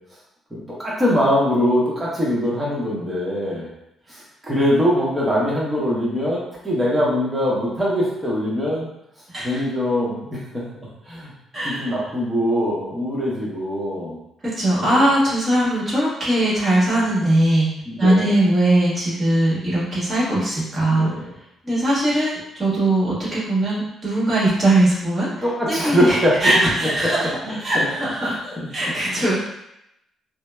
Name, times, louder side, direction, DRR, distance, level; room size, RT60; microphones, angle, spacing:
voice 1, 0.5-3.7 4.1-8.9 9.4-10.6 11.0-11.3 11.6-14.2 14.8-15.1 17.1-17.3 17.9-18.3 20.8-21.3 25.4-27.1 27.4-27.8 28.2-28.7 29.1-29.4, equal, 15° right, -6 dB, 0.9 m, -23 dB
voice 2, 9.3-9.6 11.5-11.9 14.4-17.7 18.0-21.1 21.6-25.3 25.8-27.3 27.6-28.4 28.7-29.4, right 1 dB, 30° right, -8 dB, 1.4 m, -20 dB
2.7 x 2.0 x 2.2 m, 0.82 s
cardioid pair, 90°, 0 cm